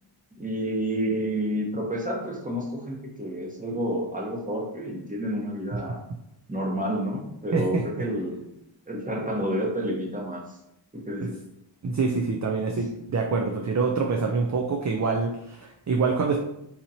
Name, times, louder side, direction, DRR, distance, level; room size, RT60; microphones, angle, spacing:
voice 1, 0.4-6.0 6.5-8.5 8.9-10.4 10.9-11.4, equal, 15° right, -1 dB, 0.9 m, -29 dB
voice 2, 11.8-16.4, right 4 dB, 40° right, 2 dB, 0.4 m, -25 dB
4.0 x 2.9 x 2.7 m, 0.81 s
wide cardioid pair, 45°, 48 cm